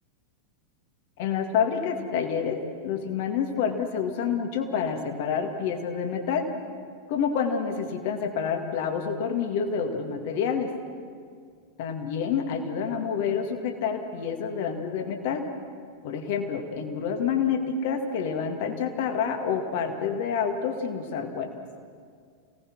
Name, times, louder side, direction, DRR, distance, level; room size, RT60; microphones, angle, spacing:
voice 1, 1.2-6.5 7.1-10.7 11.8-15.4 16.0-21.5, left 6 dB, 50° left, 5 dB, 2.2 m, -28 dB
28.5 x 18.0 x 6.2 m, 2.1 s
figure-of-eight pair, 90°, 0 cm